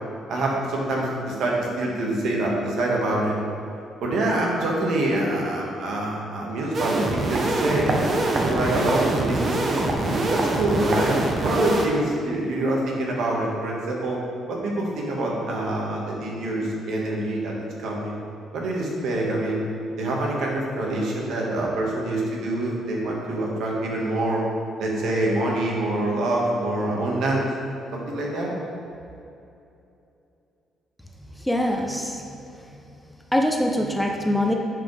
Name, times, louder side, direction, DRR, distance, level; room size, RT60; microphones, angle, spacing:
voice 1, 0.3-3.3 4.0-8.0 8.4-14.2 14.5-18.2 18.5-19.6 20.0-24.4 24.8-27.5 27.9-28.5, right 1 dB, 75° right, -2 dB, 1.6 m, -25 dB
sound 1, 6.7-11.9, right 2 dB, 35° right, 0.8 m, -24 dB
voice 2, 31.5-32.2 33.3-34.5, left 1 dB, 5° left, 2 dB, 0.5 m, -23 dB
10.0 x 5.1 x 3.3 m, 2.7 s
cardioid pair, 135°, 0 cm